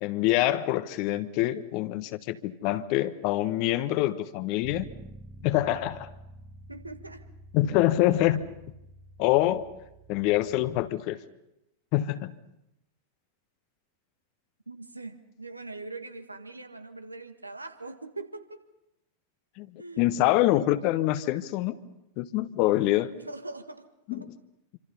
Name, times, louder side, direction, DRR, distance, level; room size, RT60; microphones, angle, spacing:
voice 1, 0.0-4.8 5.4-6.1 7.5-8.4 9.2-9.7 10.1-11.2 11.9-12.3 19.6-19.7 20.0-21.8 22.2-23.1 24.1-24.3, left 15 dB, 45° left, 12 dB, 1.2 m, -25 dB
Bass guitar, 4.6-10.9, right 2 dB, 25° right, 1.6 m, -49 dB
voice 2, 6.7-7.2 14.7-18.6 19.8-20.1 23.1-23.9 24.1-24.3, right 3 dB, 85° right, 8 dB, 1.8 m, -42 dB
27.5 x 26.0 x 5.6 m, 0.88 s
figure-of-eight pair, 90°, 0 cm